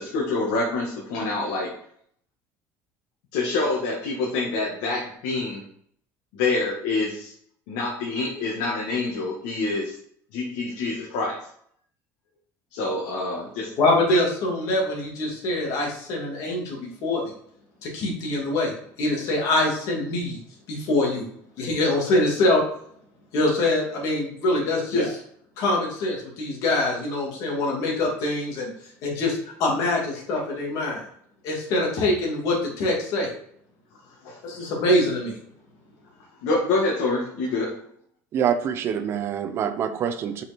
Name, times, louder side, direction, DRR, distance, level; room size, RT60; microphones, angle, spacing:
voice 1, 0.0-1.7 3.3-5.6 6.3-7.3 7.7-10.0 10.3-11.4 12.7-13.7 21.8-22.1 24.9-25.1 34.2-34.4 36.4-37.7, left 3 dB, 80° left, -3 dB, 2.0 m, -26 dB
voice 2, 13.8-17.2 17.8-18.7 19.0-20.4 20.7-21.2 21.6-22.6 23.3-25.1 25.6-28.7 29.0-31.0 31.4-33.3 34.4-35.4, left 2 dB, 55° left, -2 dB, 2.8 m, -24 dB
voice 3, 38.3-40.4, right 8 dB, 40° right, 9 dB, 0.8 m, -26 dB
6.0 x 5.8 x 4.5 m, 0.65 s
cardioid pair, 155°, 7 cm